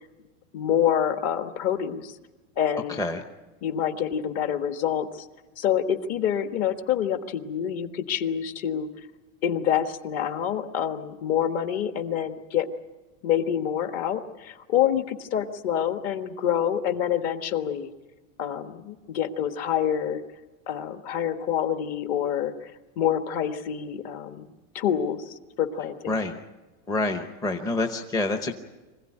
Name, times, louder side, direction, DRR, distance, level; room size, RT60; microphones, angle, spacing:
voice 1, 0.5-2.2 2.6-3.0 3.6-5.3 5.6-8.9 9.4-12.7 13.2-17.9 18.4-20.2 20.7-22.7 23.0-26.2, left 9 dB, 40° left, 8 dB, 1.5 m, -27 dB
voice 2, 26.1-26.4 26.9-28.5, left 2 dB, 10° left, 5 dB, 0.8 m, -27 dB
25.0 x 16.0 x 10.0 m, 1.2 s
supercardioid pair, 165°, 40 cm